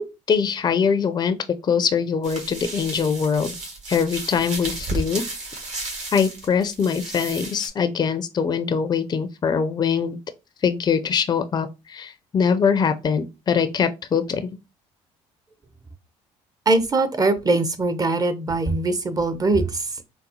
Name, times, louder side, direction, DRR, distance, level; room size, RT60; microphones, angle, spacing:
voice 1, 0.0-1.4 1.6-3.5 3.9-5.2 6.1-10.2 10.6-14.6, left 6 dB, 30° left, 0.4 m, -23 dB
sound 1, 2.2-7.7, right 2 dB, 60° right, 1.7 m, -33 dB
voice 2, 16.7-20.0, right 2 dB, 25° right, 0.7 m, -21 dB
3.9 x 2.1 x 2.7 m
supercardioid pair, 65°, 14 cm